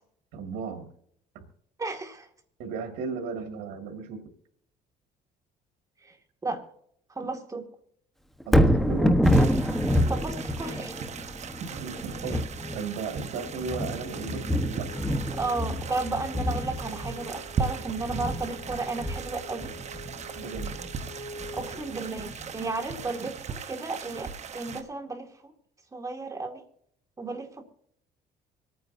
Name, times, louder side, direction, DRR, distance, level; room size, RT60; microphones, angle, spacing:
voice 1, 0.3-0.9 1.3-1.5 2.6-4.2 8.5-9.2 11.6-12.4 12.7-14.9 20.4-20.7, right 5 dB, 85° right, 3 dB, 2.0 m, -35 dB
voice 2, 1.8-2.3 6.0-6.2 6.4-6.6 7.1-7.7 10.1-10.9 15.3-19.7 21.5-25.5 25.9-26.6 27.2-27.6, right 3 dB, 20° right, 4 dB, 2.1 m, -33 dB
Thunder, 8.4-22.6 23.1-23.2, equal, ahead, 1.1 m, -27 dB
sound 1, 9.2-24.8, right 6 dB, 45° right, 1.0 m, -39 dB
Wind instrument woodwind instrument, 12.4-22.2, right 1 dB, 55° left, 4.2 m, -47 dB
25.5 x 9.3 x 2.7 m, 0.69 s
cardioid pair, 110°, 17 cm